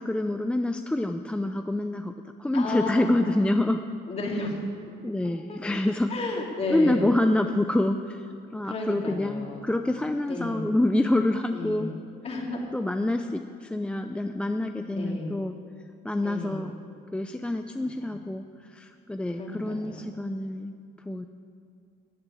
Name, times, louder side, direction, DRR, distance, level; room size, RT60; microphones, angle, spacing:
voice 1, 0.0-2.1 2.4-3.8 5.0-6.2 6.7-11.9 12.7-15.6 16.0-16.8 17.1-21.3, left 1 dB, 5° left, 7 dB, 0.5 m, -27 dB
voice 2, 2.5-3.1 4.1-4.5 5.5-5.6 6.1-7.1 8.6-9.6 10.2-10.7 11.5-12.0 12.2-12.6 14.9-15.4 16.2-16.7 18.0-18.1 19.4-20.0, left 2 dB, 35° left, 0 dB, 2.7 m, -33 dB
14.0 x 7.8 x 9.1 m, 2.3 s
cardioid pair, 110°, 17 cm